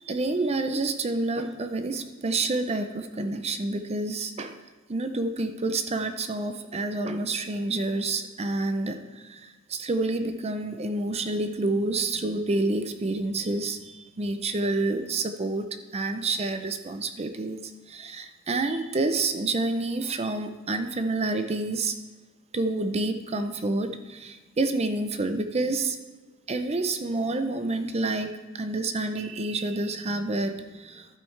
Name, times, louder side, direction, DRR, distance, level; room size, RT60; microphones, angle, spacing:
voice 1, 0.0-4.6 4.9-17.6 17.9-22.0 22.5-26.0 26.5-28.3 28.5-31.1, right 2 dB, 30° right, 8 dB, 0.5 m, -28 dB
11.5 x 8.9 x 3.3 m, 1.3 s
head